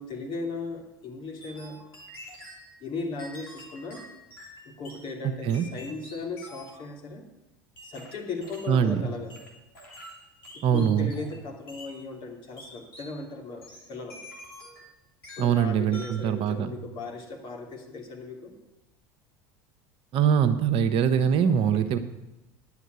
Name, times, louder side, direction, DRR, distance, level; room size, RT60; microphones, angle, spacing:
voice 1, 0.0-1.8 2.8-4.0 4.7-7.2 7.8-9.4 10.7-14.2 15.4-18.5 21.4-21.9, left 3 dB, 45° left, 1 dB, 2.9 m, -37 dB
sound 1, 1.4-2.7 3.2-5.1 5.5-6.9 7.8-8.8 9.3-11.4 11.7-12.0 12.6-13.2 13.6-14.9 15.2-15.6 15.9-16.3, equal, 85° left, 3.0 m, -47 dB
voice 2, 5.2-5.7 8.7-9.0 10.6-11.1 15.4-16.7 20.1-22.0, right 8 dB, 50° right, 9 dB, 1.0 m, -23 dB
10.5 x 7.2 x 8.2 m, 0.97 s
hypercardioid pair, 80°, 12 cm